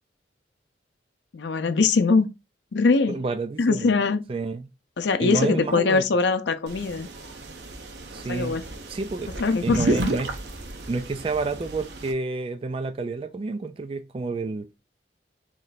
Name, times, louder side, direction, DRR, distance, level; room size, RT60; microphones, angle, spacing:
voice 1, 1.3-2.3 2.7-3.2 3.6-4.2 5.0-7.1 8.3-8.6 9.4-9.9, left 4 dB, 80° left, 0.5 m, -22 dB
voice 2, 3.1-3.9 4.3-4.7 5.2-6.0 8.1-8.6 8.9-9.3 9.6-10.3 10.9-14.7, right 3 dB, 30° right, 0.3 m, -29 dB
sound 1, 6.7-12.1, right 1 dB, 75° right, 0.7 m, -31 dB
3.2 x 3.1 x 4.0 m
head